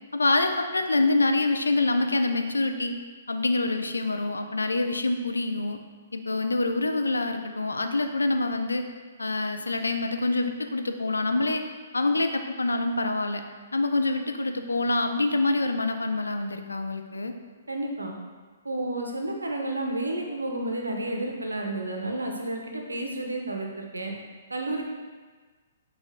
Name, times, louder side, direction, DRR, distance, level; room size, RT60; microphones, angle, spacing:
voice 1, 0.1-3.0 3.3-5.8 6.1-8.9 9.2-11.6 11.9-13.4 13.7-17.3, left 2 dB, 80° left, 6 dB, 0.3 m, -26 dB
voice 2, 17.7-18.1 18.6-24.1 24.5-24.8, right 2 dB, 80° right, 1 dB, 0.6 m, -31 dB
4.4 x 2.3 x 3.5 m, 1.4 s
figure-of-eight pair, 120°, 0 cm